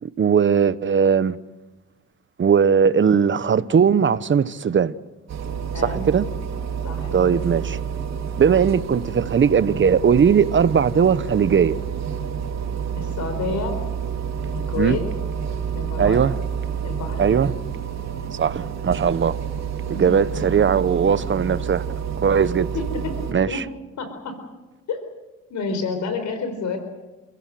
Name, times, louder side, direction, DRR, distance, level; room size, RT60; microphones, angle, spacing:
voice 1, 0.0-1.4 2.4-5.0 5.8-6.2 7.1-7.8 8.4-11.8 14.8-15.0 16.0-16.4 17.2-17.5 18.4-19.4 20.0-21.8 22.2-22.7 23.3-23.6, right 7 dB, 40° right, 1.1 m, -19 dB
sound 1, 5.3-23.3, right 7 dB, 60° right, 4.2 m, -29 dB
voice 2, 5.7-6.1 6.8-7.3 13.0-13.8 14.5-15.0 15.7-16.2 16.8-17.4 19.9-20.1 20.4-20.5 22.7-23.1 23.4-23.6 24.0-24.4 24.9-25.0 25.5-26.8, left 4 dB, 70° left, 4.5 m, -29 dB
29.5 x 16.5 x 7.8 m
cardioid pair, 90°, 30 cm